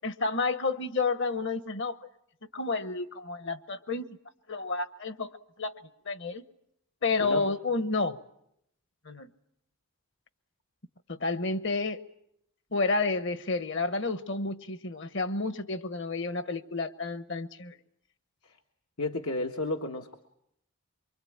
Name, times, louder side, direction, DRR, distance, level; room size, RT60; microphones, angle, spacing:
voice 1, 0.0-2.0 2.5-4.2 4.5-5.3 5.6-5.7 6.0-6.4 7.0-8.2 9.1-9.3 11.1-12.0 12.7-17.8, left 3 dB, 55° left, 1.1 m, -30 dB
voice 2, 19.0-20.2, left 2 dB, 85° left, 1.5 m, -32 dB
24.5 x 24.0 x 8.7 m
head